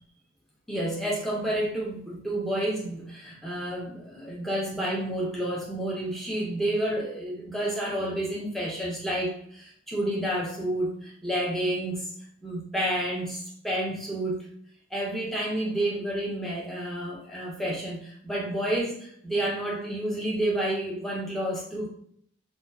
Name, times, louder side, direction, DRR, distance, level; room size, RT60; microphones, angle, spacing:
voice 1, 0.7-12.0 12.4-14.4 14.9-21.9, right 1 dB, ahead, -5 dB, 0.6 m, -30 dB
2.4 x 2.3 x 2.2 m, 0.64 s
head